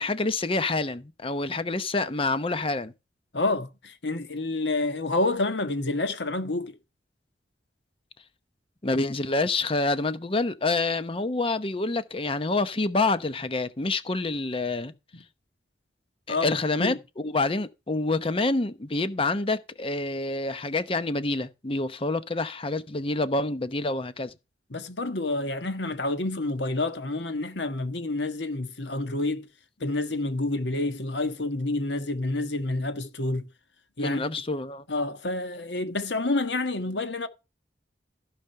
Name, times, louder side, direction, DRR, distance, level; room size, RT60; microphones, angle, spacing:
voice 1, 0.0-2.9 8.8-14.9 16.3-24.3 34.0-34.8, left 2 dB, 30° left, 0.8 m, -27 dB
voice 2, 3.3-6.7 16.3-17.0 24.7-29.5 29.8-33.5 34.0-34.2 34.9-37.3, left 2 dB, 80° left, 1.4 m, -28 dB
15.0 x 5.1 x 5.6 m
head